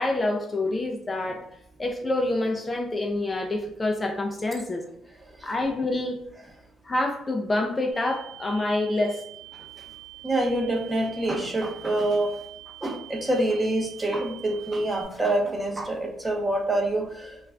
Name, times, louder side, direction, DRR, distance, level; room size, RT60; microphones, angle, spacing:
voice 1, 0.0-1.5 1.8-4.8 5.4-6.2 6.8-9.2, left 2 dB, 25° left, 2 dB, 0.3 m, -27 dB
sound 1, 7.9-15.0, right 21 dB, 55° right, 0.8 m, -45 dB
voice 2, 10.2-12.4 12.8-17.5, right 1 dB, 15° right, 1 dB, 0.6 m, -26 dB
2.4 x 2.2 x 3.3 m, 0.78 s
cardioid pair, 90°, 0 cm